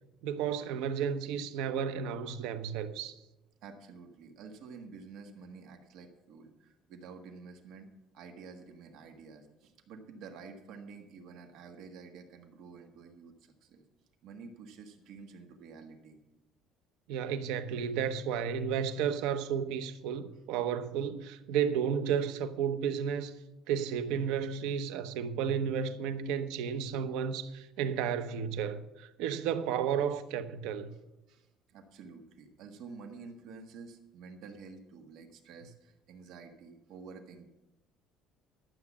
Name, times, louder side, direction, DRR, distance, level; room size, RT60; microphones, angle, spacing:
voice 1, 0.2-3.2 17.1-23.3 23.7-30.9, right 7 dB, 85° right, 0.9 m, -32 dB
voice 2, 3.6-7.9 8.1-13.8 14.2-16.2 20.3-20.4 28.4-28.5 30.9-31.0 31.3-37.5, right 5 dB, 60° right, 1.5 m, -50 dB
12.0 x 7.7 x 7.2 m
cardioid pair, 155°, 0 cm